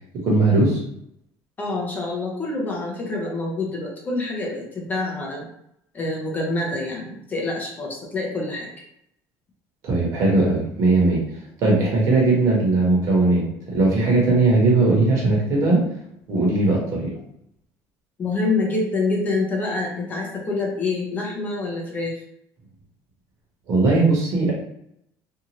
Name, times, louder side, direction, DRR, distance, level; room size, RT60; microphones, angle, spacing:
voice 1, 0.2-0.8 9.8-11.2 11.6-15.8 16.3-17.1 23.7-24.5, right 2 dB, 45° right, -3 dB, 1.0 m, -19 dB
voice 2, 1.6-5.5 5.9-8.7 18.2-22.2, left 3 dB, 20° left, -2 dB, 0.5 m, -26 dB
2.7 x 2.4 x 2.9 m, 0.75 s
cardioid pair, 170°, 8 cm